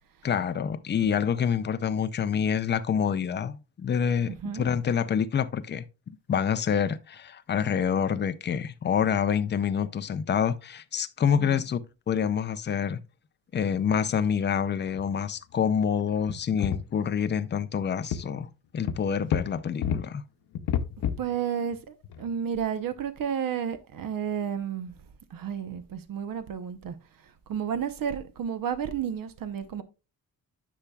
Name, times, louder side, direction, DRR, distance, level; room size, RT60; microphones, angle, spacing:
voice 1, 0.2-5.8 6.3-11.8 12.1-13.0 13.5-20.2, left 7 dB, 30° left, 0.4 m, -27 dB
voice 2, 4.3-4.7 11.3-11.6 21.2-24.9 25.3-27.0 27.5-29.8, right 8 dB, 60° right, 0.9 m, -32 dB
sound 1, 14.3-14.5 14.8-15.0 15.4-15.5 16.3-17.1 17.6-17.8 18.1-18.2 18.9-20.0 20.6-21.4 21.7-21.8 22.0-22.3 22.9-23.0, left 8 dB, 90° left, 0.8 m, -30 dB
10.0 x 5.8 x 2.3 m
wide cardioid pair, 170°, 37 cm